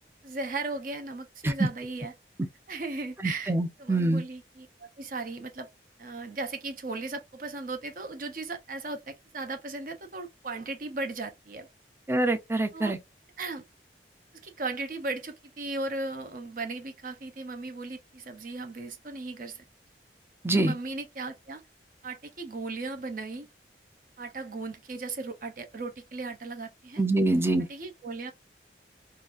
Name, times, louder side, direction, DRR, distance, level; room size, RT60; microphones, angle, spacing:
voice 1, 0.2-2.1 2.7-3.5 3.8-4.7 5.0-5.7 6.0-11.7 12.7-12.9 13.4-13.6 14.4-19.6 20.5-21.6 22.0-23.5 24.2-27.0 27.7-28.3, right 3 dB, 50° right, 0.7 m, -36 dB
voice 2, 3.2-4.2 12.1-13.0 20.4-20.7 27.0-27.7, right 2 dB, 15° right, 0.5 m, -25 dB
3.9 x 2.5 x 2.5 m
head